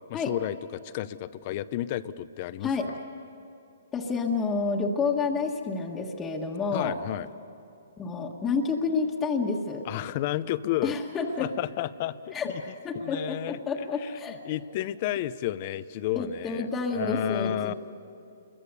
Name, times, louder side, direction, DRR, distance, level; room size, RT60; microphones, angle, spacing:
voice 1, 0.1-2.9 6.7-7.3 9.9-10.9 11.4-12.6 12.9-13.6 14.0-16.7 16.9-17.7, left 13 dB, 40° left, 15 dB, 0.7 m, -32 dB
voice 2, 3.9-6.9 8.0-9.8 10.8-11.5 12.3-14.4 16.1-17.7, left 4 dB, 15° left, 0 dB, 1.6 m, -29 dB
29.0 x 23.0 x 7.0 m, 2.6 s
hypercardioid pair, 155°, 0 cm